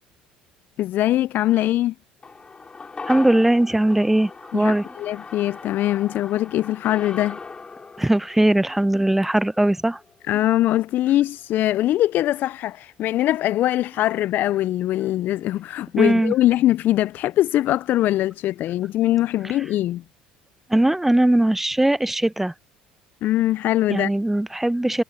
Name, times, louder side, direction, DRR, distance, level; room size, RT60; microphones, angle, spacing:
voice 1, 0.8-1.9 4.5-7.4 10.3-20.0 23.2-24.1, left 14 dB, 55° left, 0.4 m, -22 dB
sound 1, 2.2-10.7 11.0-11.1, left 4 dB, 25° left, 6.4 m, -39 dB
voice 2, 3.1-4.9 8.0-10.0 16.0-16.3 20.7-22.5 23.9-25.0, right 1 dB, 5° right, 0.6 m, -20 dB
hypercardioid pair, 65°, 4 cm